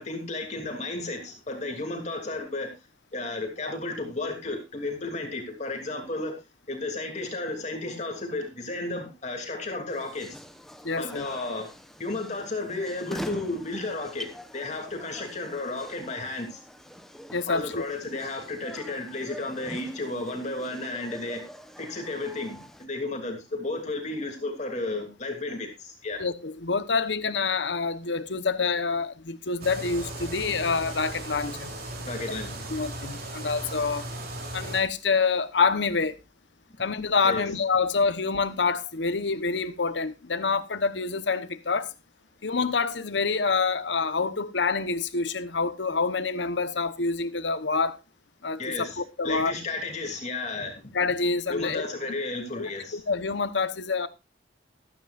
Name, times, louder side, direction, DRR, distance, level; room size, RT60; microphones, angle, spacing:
voice 1, 0.0-2.7 3.1-6.3 6.7-10.4 11.0-11.7 12.0-16.6 17.5-21.5 21.8-26.2 32.0-32.8 37.2-37.4 48.6-50.9 51.5-53.0, left 2 dB, 40° left, 2.8 m, -33 dB
sound 1, 9.9-22.9, equal, ahead, 0.9 m, -44 dB
voice 2, 10.8-11.2 17.3-17.8 26.2-31.7 32.7-34.0 34.5-36.2 36.8-41.9 42.4-48.0 48.4-49.5 50.9-51.8 52.6-54.1, left 4 dB, 80° left, 1.0 m, -27 dB
sound 2, 29.6-34.8, right 1 dB, 55° right, 3.3 m, -37 dB
15.0 x 13.0 x 2.5 m
head